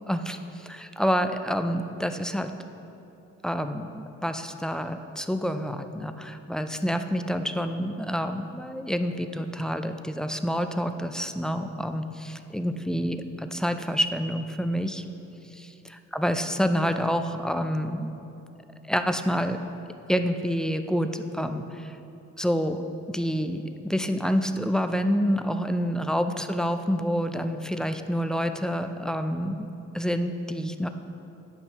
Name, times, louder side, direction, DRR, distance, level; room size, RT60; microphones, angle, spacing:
voice 1, 0.1-2.5 3.4-15.0 16.1-18.1 18.9-19.6 20.1-22.0 22.4-22.8 23.1-29.7 29.9-30.9, equal, ahead, 7 dB, 0.3 m, -28 dB
9.9 x 5.5 x 4.0 m, 2.9 s
cardioid pair, 90°, 30 cm